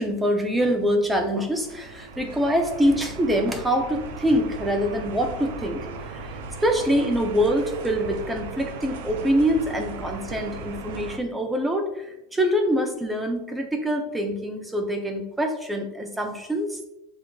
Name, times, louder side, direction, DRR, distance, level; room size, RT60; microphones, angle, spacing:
voice 1, 0.0-16.8, equal, 10° right, 4 dB, 0.5 m, -25 dB
sound 1, 1.5-11.2, right 3 dB, 70° right, 0.4 m, -37 dB
6.9 x 2.5 x 2.3 m, 0.93 s
supercardioid pair, 140°, 0 cm